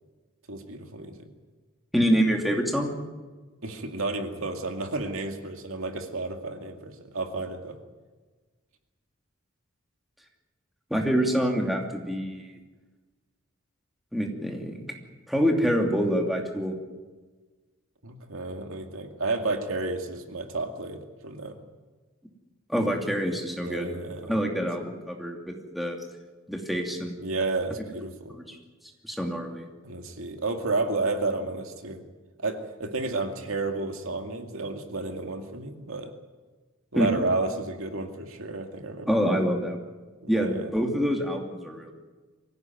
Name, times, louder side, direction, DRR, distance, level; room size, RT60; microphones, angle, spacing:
voice 1, 0.5-1.3 3.6-7.8 18.0-21.6 23.6-24.3 27.2-28.4 29.8-32.0 32.4-36.1 36.9-39.5 40.2-40.7, right 3 dB, 70° right, 5 dB, 2.3 m, -31 dB
voice 2, 1.9-2.9 10.9-12.5 14.1-14.8 15.3-16.8 22.7-23.9 24.3-26.0 26.5-27.2 28.3-28.5 29.0-29.6 37.0-37.1 39.1-39.8 40.3-41.9, equal, ahead, 1 dB, 2.8 m, -26 dB
23.5 x 16.5 x 9.4 m, 1.3 s
head